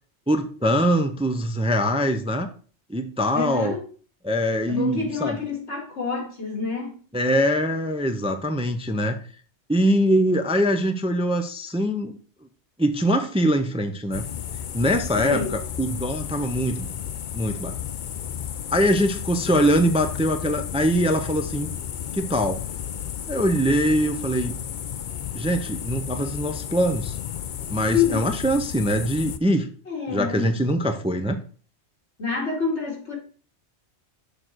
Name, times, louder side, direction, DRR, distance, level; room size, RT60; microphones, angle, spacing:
voice 1, 0.3-2.5 2.9-3.7 4.2-5.4 7.1-9.2 9.7-12.2 12.8-14.3 14.7-16.9 17.3-17.7 18.7-21.7 22.1-22.6 23.3-24.5 25.3-27.2 27.7-29.7 30.1-31.4, equal, 5° right, 0.5 m, -23 dB
voice 2, 3.3-3.9 4.7-7.0 15.2-15.6 27.9-28.3 29.9-30.5 32.2-33.2, left 6 dB, 85° left, 2.3 m, -27 dB
sound 1, 14.1-29.4, left 9 dB, 55° left, 0.6 m, -33 dB
6.7 x 3.9 x 6.2 m
omnidirectional pair, 1.2 m